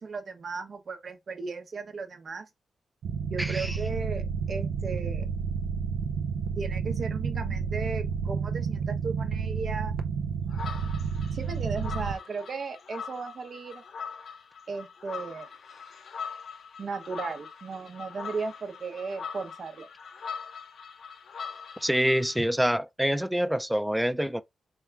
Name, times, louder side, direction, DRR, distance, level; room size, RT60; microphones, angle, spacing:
voice 1, 0.0-2.5 3.3-5.3 6.6-9.9 11.3-13.8 14.7-15.5 16.8-19.9, right 4 dB, 60° right, 0.8 m, -36 dB
sound 1, 3.0-12.1, right 6 dB, 75° right, 0.4 m, -30 dB
voice 2, 3.4-3.8 21.8-24.4, equal, 5° right, 0.4 m, -26 dB
sound 2, 10.5-22.4, left 6 dB, 70° left, 0.5 m, -42 dB
3.5 x 2.3 x 3.3 m
supercardioid pair, 40°, 0 cm